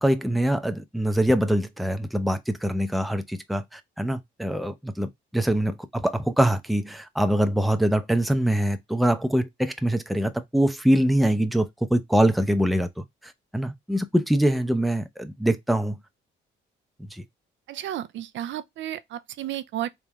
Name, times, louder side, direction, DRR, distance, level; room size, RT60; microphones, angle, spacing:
voice 1, 0.0-12.9 13.2-16.0 17.1-17.2, right 1 dB, ahead, 0.6 m, -24 dB
voice 2, 17.7-19.9, right 12 dB, 70° right, 0.5 m, -33 dB
3.6 x 3.3 x 3.0 m
cardioid pair, 90°, 20 cm